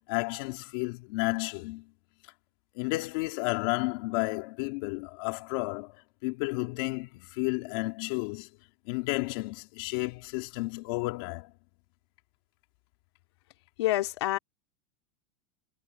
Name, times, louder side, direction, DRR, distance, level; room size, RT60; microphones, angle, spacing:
voice 1, 0.1-1.9 2.7-6.0 6.2-8.5 8.8-11.5, left 25 dB, 55° left, 4.3 m, -32 dB
voice 2, 13.8-14.4, left 16 dB, 85° left, 2.9 m, -27 dB
supercardioid pair, 165°, 14 cm